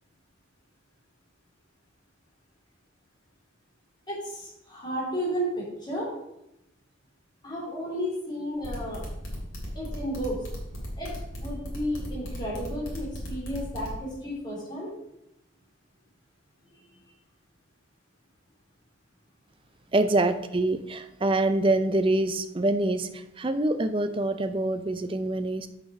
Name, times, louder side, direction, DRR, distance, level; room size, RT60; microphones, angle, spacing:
voice 1, 4.1-6.1 7.4-9.0 9.7-10.4 11.0-11.1 11.4-14.9 16.7-16.8, equal, 20° left, 3.3 m, -33 dB
sound 1, 8.6-13.9, equal, 90° left, 2.9 m, -36 dB
voice 2, 19.9-25.7, right 2 dB, 25° right, 0.5 m, -25 dB
6.8 x 5.8 x 5.8 m
head